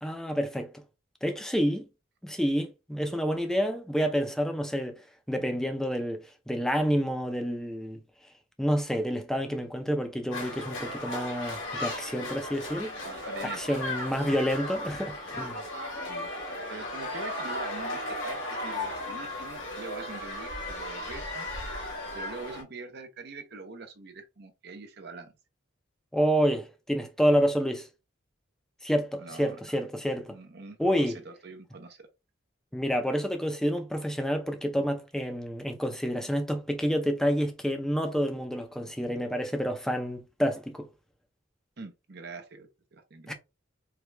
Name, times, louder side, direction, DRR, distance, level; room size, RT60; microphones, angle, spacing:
voice 1, 0.0-0.8 1.2-1.9 2.2-4.9 5.3-8.0 8.6-13.0 13.6-15.6 26.1-27.9 28.8-30.4 30.8-31.2 32.7-40.9 43.3-43.4, equal, 5° left, 0.6 m, -28 dB
sound 1, 10.3-22.6, left 1 dB, 80° left, 2.4 m, -36 dB
voice 2, 13.0-14.3 16.1-16.3 16.7-21.5 22.1-25.3 29.2-29.6 30.3-32.1 41.8-43.3, right 3 dB, 55° right, 0.7 m, -43 dB
4.7 x 2.4 x 3.2 m
head